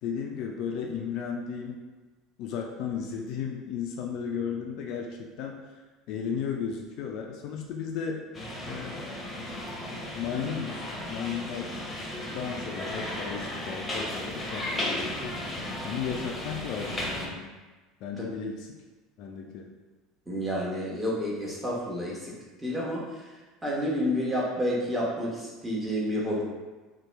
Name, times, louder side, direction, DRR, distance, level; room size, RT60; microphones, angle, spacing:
voice 1, 0.0-1.8 2.4-5.6 6.1-8.3 8.7-9.1 10.1-11.7 12.3-15.3 15.8-17.5 18.0-18.8 19.2-19.7, left 7 dB, 55° left, 1 dB, 0.3 m, -34 dB
sound 1, 8.3-17.3, left 1 dB, 20° left, 0.8 m, -35 dB
voice 2, 20.3-22.3 22.6-23.0 23.6-26.4, equal, 10° right, -5 dB, 0.9 m, -29 dB
2.8 x 2.1 x 3.1 m, 1.2 s
figure-of-eight pair, 70°, 0 cm